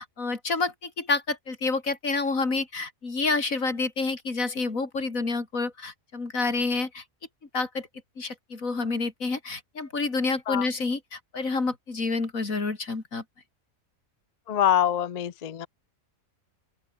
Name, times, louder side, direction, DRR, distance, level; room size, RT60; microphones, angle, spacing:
voice 1, 0.0-7.0 7.5-7.9 8.2-13.2, left 3 dB, 75° left, 3.6 m, -28 dB
voice 2, 14.5-15.7, left 10 dB, 50° left, 0.5 m, -24 dB
open air
omnidirectional pair, 1.4 m